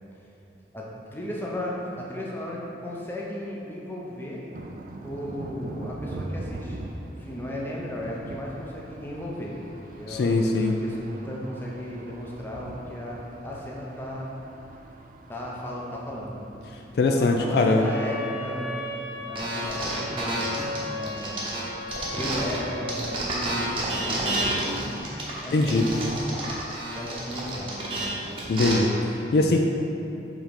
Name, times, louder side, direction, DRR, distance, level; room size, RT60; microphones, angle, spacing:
voice 1, 0.7-4.4 5.0-6.8 7.2-9.6 10.0-14.3 15.3-16.5 17.2-18.9 19.2-20.5 20.8-21.4 22.1-24.7 25.4-26.0 26.9-28.1, equal, 10° left, -4 dB, 0.7 m, -35 dB
sound 1, 4.5-23.1, right 1 dB, 45° right, 0.4 m, -43 dB
voice 2, 10.1-10.8 16.9-17.9 25.5-25.9 28.5-29.6, left 2 dB, 60° left, 2 dB, 0.3 m, -22 dB
sound 2, 17.8-23.0, left 1 dB, 80° left, 1.0 m, -36 dB
sound 3, 19.3-22.6 22.9-28.7, right 1 dB, 30° right, 0.9 m, -30 dB
5.0 x 3.8 x 5.2 m, 2.8 s
head